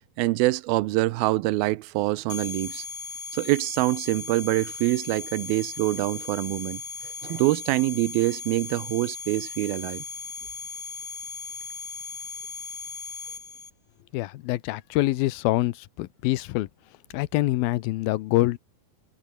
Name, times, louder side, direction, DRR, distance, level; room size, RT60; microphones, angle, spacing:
voice 1, 0.2-2.9 3.3-10.0, right 19 dB, 85° right, 2.6 m, -25 dB
sound 1, 2.3-13.7, left 5 dB, 30° left, 1.8 m, -37 dB
voice 2, 14.1-16.7 17.1-18.6, left 17 dB, 90° left, 2.6 m, -25 dB
omnidirectional pair, 4.2 m